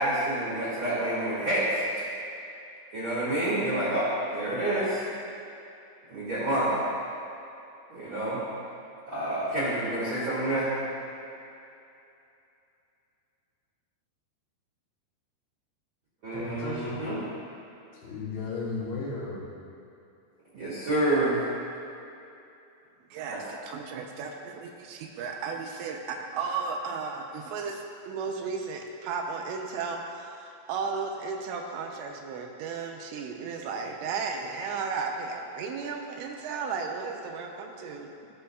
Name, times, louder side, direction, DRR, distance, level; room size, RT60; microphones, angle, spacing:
voice 1, 0.0-1.8 2.9-5.0 6.1-6.8 7.9-8.4 9.1-10.7 16.2-17.2 20.5-21.4 23.3-23.4, right 1 dB, 50° right, -11 dB, 1.4 m, -28 dB
voice 2, 16.3-17.0 18.0-19.5, left 3 dB, 70° left, -5 dB, 2.8 m, -34 dB
voice 3, 23.1-38.1, right 5 dB, 85° right, 3 dB, 2.8 m, -34 dB
13.5 x 6.1 x 2.3 m, 2.7 s
omnidirectional pair, 5.1 m